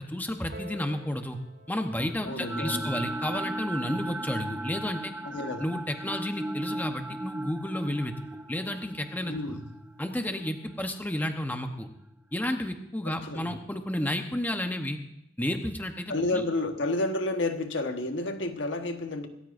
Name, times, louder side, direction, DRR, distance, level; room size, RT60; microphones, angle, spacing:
voice 1, 0.0-1.4 1.7-5.1 5.6-8.1 8.5-9.6 10.0-11.9 12.3-15.0 15.4-16.4, left 1 dB, 10° left, 5 dB, 0.9 m, -31 dB
Piano, 0.5-5.7 6.5-6.6, right 1 dB, 65° right, 2.6 m, -51 dB
sound 1, 2.0-12.1, right 1 dB, 10° right, 0.4 m, -37 dB
voice 2, 2.2-3.1 5.2-5.7 9.3-9.7 13.0-13.5 16.1-19.3, left 2 dB, 75° left, 5 dB, 1.3 m, -31 dB
26.0 x 14.0 x 2.6 m, 0.83 s
head